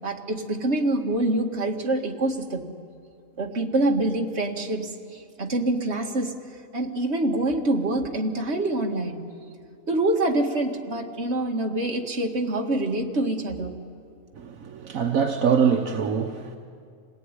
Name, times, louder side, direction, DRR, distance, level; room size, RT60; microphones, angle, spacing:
voice 1, 0.0-2.7 3.4-6.4 6.7-9.2 9.9-13.7, right 2 dB, 50° right, 3 dB, 2.1 m, -25 dB
voice 2, 14.4-16.6, right 6 dB, 75° right, 4 dB, 1.4 m, -24 dB
26.5 x 18.5 x 9.7 m, 2.3 s
omnidirectional pair, 1.5 m